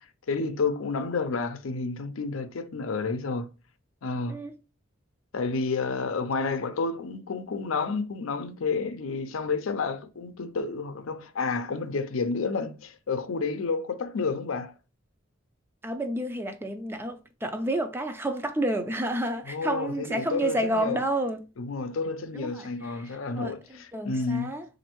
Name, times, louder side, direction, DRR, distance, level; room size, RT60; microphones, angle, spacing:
voice 1, 0.3-3.5 4.0-4.4 5.3-14.7 19.4-21.0 21.6-24.5, left 4 dB, 90° left, 0.6 m, -30 dB
voice 2, 15.8-21.4 22.4-23.1 23.4-24.7, right 1 dB, 10° right, 0.4 m, -30 dB
4.1 x 2.6 x 3.0 m
head